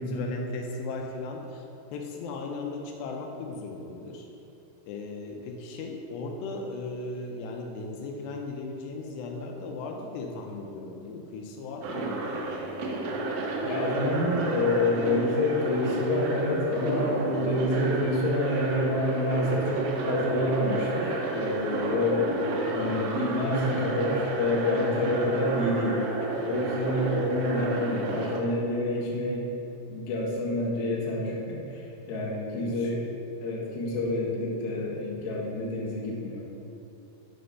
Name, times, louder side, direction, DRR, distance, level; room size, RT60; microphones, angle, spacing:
voice 1, 0.0-1.6 1.9-4.3 4.9-13.2 32.6-32.9, left 3 dB, 85° left, 1 dB, 2.8 m, -37 dB
sound 1, 11.8-28.4, right 3 dB, 70° right, 2.3 m, -31 dB
voice 2, 13.6-22.3 22.7-26.1 26.4-29.5 29.9-33.0 33.4-36.4, left 1 dB, 60° left, -4 dB, 2.2 m, -28 dB
12.5 x 4.3 x 5.4 m, 2.9 s
omnidirectional pair, 4.9 m